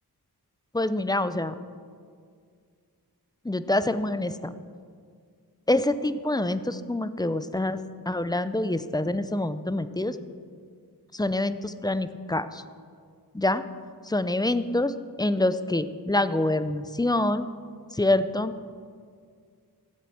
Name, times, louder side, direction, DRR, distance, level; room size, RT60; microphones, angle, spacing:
voice 1, 0.7-1.5 3.4-4.5 5.7-7.8 8.1-10.2 11.1-12.6 13.3-13.6 14.1-17.5 17.9-18.5, left 1 dB, 10° left, 12 dB, 0.5 m, -26 dB
15.5 x 7.6 x 5.8 m, 2.1 s
wide cardioid pair, 70°, 39 cm